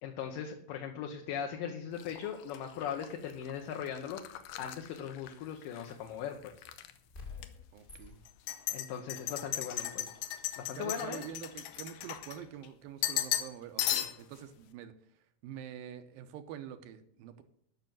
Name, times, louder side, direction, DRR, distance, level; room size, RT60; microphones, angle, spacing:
voice 1, 0.0-4.2 4.6-6.6 8.7-10.1 10.6-11.2, left 8 dB, 70° left, 3 dB, 2.5 m, -39 dB
sound 1, 2.0-5.9 6.2-6.9 7.4-7.5 8.3-12.7 13.0-13.5 13.8-14.4, left 12 dB, 85° left, 2.8 m, -37 dB
sound 2, 5.6-5.9 7.1-8.8 9.3-9.6, left 5 dB, 30° left, 1.0 m, -50 dB
voice 2, 7.7-8.2 9.6-10.1 10.7-14.9 15.4-17.4, right 10 dB, 75° right, 9 dB, 2.5 m, -46 dB
12.0 x 6.2 x 7.7 m, 0.65 s
omnidirectional pair, 4.4 m